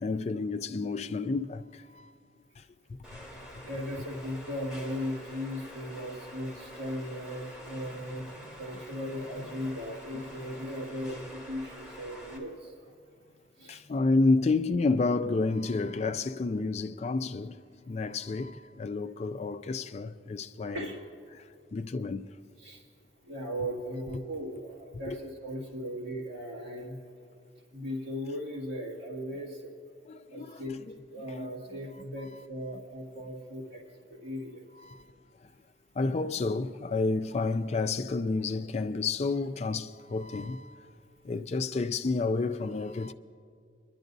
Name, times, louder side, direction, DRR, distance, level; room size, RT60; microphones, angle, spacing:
voice 1, 0.0-1.6 2.0-2.1 13.7-17.6 17.9-20.9 21.3-21.4 21.7-22.3 25.1-25.2 30.1-30.6 31.3-31.5 34.8-35.0 36.0-40.8 41.2-43.1, left 3 dB, 35° left, 0.3 m, -30 dB
sound 1, 3.0-12.4, equal, ahead, 3.1 m, -47 dB
voice 2, 3.6-12.7 13.6-13.8 20.7-21.0 22.6-22.8 23.3-27.0 27.7-29.7 30.3-30.8 31.1-33.8 34.1-34.6, equal, 65° right, 2.0 m, -37 dB
27.0 x 11.5 x 2.6 m
head